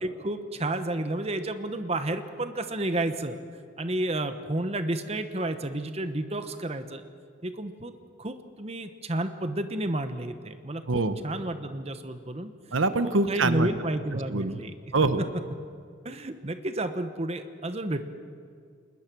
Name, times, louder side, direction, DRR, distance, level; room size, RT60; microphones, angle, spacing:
voice 1, 0.0-3.4 3.8-7.0 7.4-7.9 8.2-12.5 13.0-14.7 16.0-18.0, right 1 dB, 30° right, 9 dB, 1.0 m, -31 dB
voice 2, 12.7-13.7 14.3-14.6 14.9-15.2, right 3 dB, 85° right, 11 dB, 1.1 m, -24 dB
27.5 x 20.5 x 6.2 m, 2.2 s
head